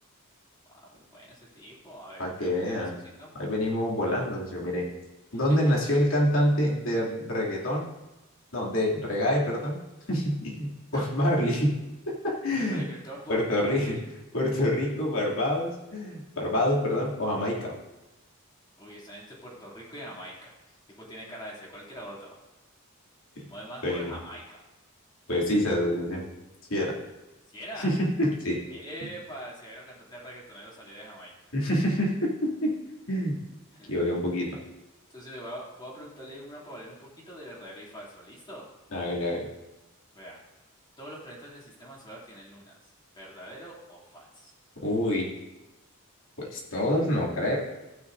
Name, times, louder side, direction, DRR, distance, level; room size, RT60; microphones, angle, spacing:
voice 1, 0.8-3.3 5.3-5.6 10.9-11.1 12.5-14.0 18.8-20.5 21.0-22.4 23.5-24.6 27.5-27.9 28.7-31.3 33.7-33.9 35.1-38.6 40.1-40.4 41.0-42.8 43.1-44.5, equal, 20° left, -4 dB, 2.9 m, -43 dB
voice 2, 2.2-2.9 3.3-4.8 5.3-7.9 8.5-9.8 10.1-11.7 12.1-12.9 13.3-13.9 14.3-17.7 23.4-23.5 23.8-24.2 25.3-26.2 26.7-26.9 27.8-28.6 31.5-32.7 33.1-33.4 33.9-34.5 38.9-39.5 44.8-45.3 46.4-47.6, left 1 dB, 65° left, -3 dB, 2.8 m, -26 dB
15.0 x 9.5 x 2.7 m, 1.0 s
head